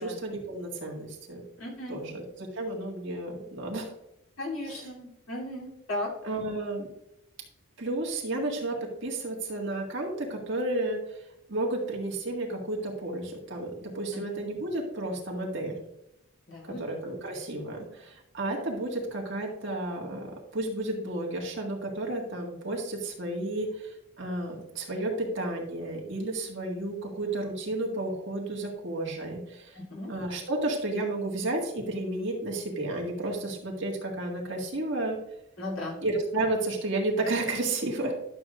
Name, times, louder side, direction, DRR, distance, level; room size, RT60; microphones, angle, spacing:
voice 1, 0.0-1.4 1.9-3.9 4.6-4.9 6.2-6.9 7.8-11.2 11.5-15.8 16.6-29.8 30.1-35.2 36.0-38.2, right 2 dB, 60° right, -1 dB, 1.9 m, -32 dB
voice 2, 1.6-2.0 4.4-6.1 14.1-14.2 16.5-16.8 29.7-30.1 35.6-36.0, left 1 dB, 85° left, -3 dB, 3.0 m, -36 dB
12.0 x 7.0 x 2.5 m, 0.84 s
head